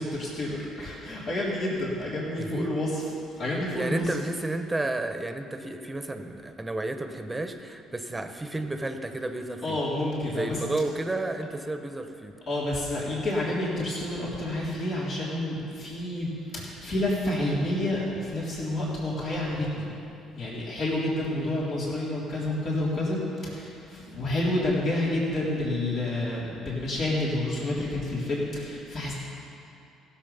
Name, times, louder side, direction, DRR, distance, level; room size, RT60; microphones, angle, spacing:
voice 1, 0.0-4.1 9.6-10.6 12.5-19.9 20.3-29.1, left 1 dB, 55° left, -6 dB, 3.6 m, -29 dB
voice 2, 2.4-2.8 3.8-9.8 10.3-12.3 21.3-21.5, right 2 dB, 15° right, 7 dB, 1.1 m, -32 dB
16.0 x 7.6 x 5.7 m, 2.7 s
hypercardioid pair, 65°, 0 cm